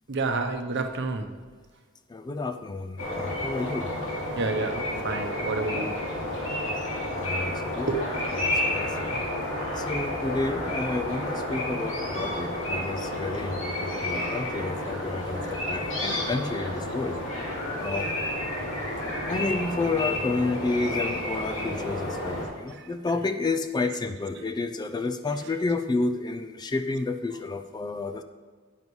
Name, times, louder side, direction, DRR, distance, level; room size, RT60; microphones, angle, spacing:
voice 1, 0.1-1.3 4.4-6.0 7.8-8.4 13.3-13.4 15.7-17.5 18.0-18.1 18.6-19.1 22.7-23.3 23.9-24.0 24.4-24.5 25.4-25.6 27.3-27.4, right 3 dB, 55° right, 6 dB, 0.8 m, -33 dB
voice 2, 2.1-3.9 7.1-7.9 8.4-9.2 9.7-17.2 17.8-18.1 19.3-28.2, left 3 dB, 20° left, 9 dB, 0.3 m, -30 dB
sound 1, 3.0-22.5, left 1 dB, 60° left, 2.6 m, -31 dB
10.5 x 9.2 x 3.2 m, 1.5 s
head